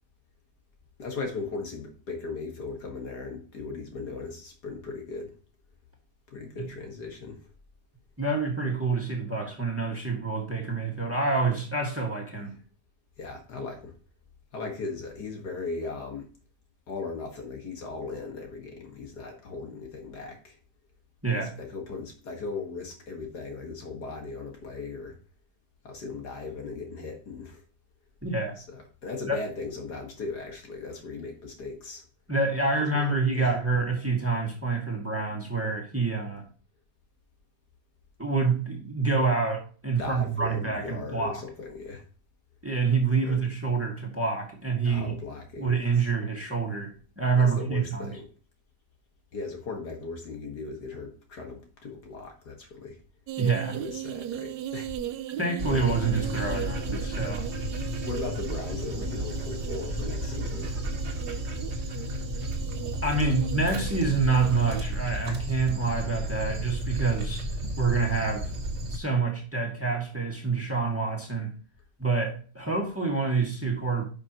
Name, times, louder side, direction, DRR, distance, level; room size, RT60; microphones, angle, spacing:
voice 1, 1.0-5.4 6.3-7.4 13.2-13.9 14.5-16.3 16.9-20.6 21.3-25.2 25.8-27.6 28.6-32.0 33.1-33.5 40.0-42.0 43.2-43.4 44.8-45.7 46.0-46.1 47.4-48.3 49.3-53.0 53.7-54.9 58.0-60.7, left 4 dB, 70° left, 2 dB, 2.3 m, -38 dB
voice 2, 8.2-12.5 21.2-21.5 28.2-28.6 29.3-29.4 32.3-36.4 38.2-41.4 42.6-45.2 45.6-48.2 53.4-53.8 55.4-57.4 63.0-67.5 67.8-68.5 68.9-71.5 72.0-74.0, right 4 dB, 10° right, 0 dB, 1.7 m, -27 dB
sound 1, 53.3-64.8, right 12 dB, 80° right, 1.1 m, -38 dB
Dog, 55.6-69.0, right 1 dB, 45° right, 1.6 m, -33 dB
10.0 x 5.8 x 3.0 m, 0.39 s
omnidirectional pair, 1.8 m